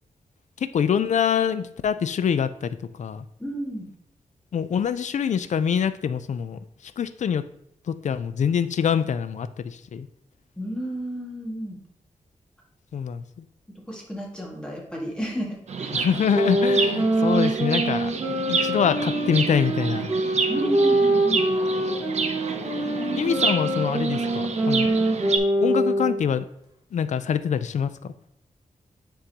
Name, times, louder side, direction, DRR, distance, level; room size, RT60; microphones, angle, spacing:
voice 1, 0.6-3.3 4.5-7.4 7.9-10.1 12.9-13.4 15.9-18.1 18.5-20.1 23.2-24.9 25.6-26.4 26.9-28.1, left 7 dB, 65° left, 13 dB, 0.4 m, -25 dB
voice 2, 3.4-3.9 10.6-11.8 13.9-15.9 20.5-21.5 22.8-23.4, equal, 5° left, -3 dB, 1.8 m, -32 dB
Chirp tweet, 15.7-25.4, right 4 dB, 60° right, 0.6 m, -29 dB
sound 1, 16.3-26.3, right 1 dB, 30° right, 1.5 m, -24 dB
9.7 x 3.8 x 2.8 m, 0.75 s
wide cardioid pair, 125°, 13 cm